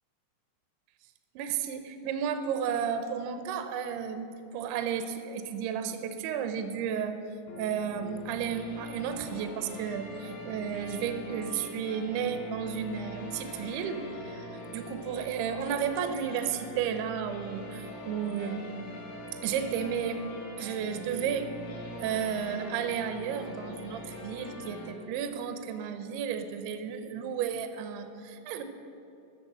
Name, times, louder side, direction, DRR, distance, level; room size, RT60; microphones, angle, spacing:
voice 1, 1.4-7.2 7.5-18.7 19.4-20.2 20.6-21.5 22.0-28.6, right 7 dB, 80° right, 8 dB, 2.4 m, -33 dB
sound 1, 7.5-24.9, equal, 65° left, 4.3 m, -43 dB
14.0 x 6.9 x 7.5 m, 2.8 s
omnidirectional pair, 5.4 m